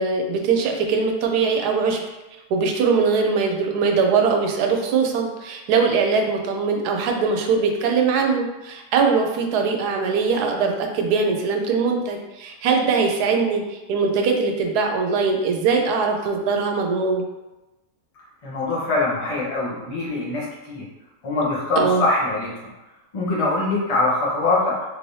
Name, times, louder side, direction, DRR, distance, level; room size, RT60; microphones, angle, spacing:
voice 1, 0.0-2.0 2.5-17.3 21.8-22.0, right 5 dB, 85° right, 3 dB, 1.1 m, -21 dB
voice 2, 18.4-20.9 21.2-22.5 23.1-24.8, left 2 dB, 35° left, -5 dB, 0.6 m, -23 dB
3.2 x 3.1 x 2.7 m, 1.1 s
omnidirectional pair, 1.7 m